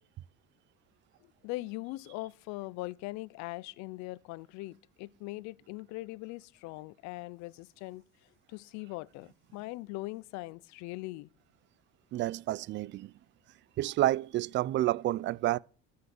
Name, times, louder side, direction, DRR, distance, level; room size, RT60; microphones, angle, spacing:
voice 1, 1.4-8.0 8.5-11.3, left 20 dB, 70° left, 0.6 m, -41 dB
voice 2, 12.1-13.1 13.8-15.6, right 15 dB, 40° right, 0.4 m, -29 dB
13.5 x 5.6 x 6.5 m
supercardioid pair, 90°, 29 cm